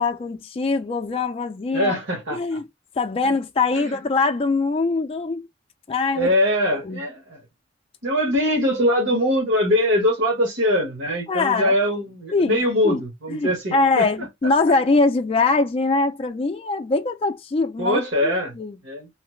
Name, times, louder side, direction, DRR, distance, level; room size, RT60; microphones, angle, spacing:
voice 1, 0.0-2.0 2.3-2.6 3.0-5.5 5.9-6.3 6.9-7.0 11.3-11.8 12.3-12.6 12.8-13.0 13.3-18.7, left 3 dB, 30° left, 0.3 m, -22 dB
voice 2, 1.7-2.6 3.7-3.9 6.1-7.4 8.0-14.3 17.8-18.5 18.8-19.1, left 1 dB, 80° right, 1.2 m, -22 dB
3.1 x 2.0 x 3.1 m
head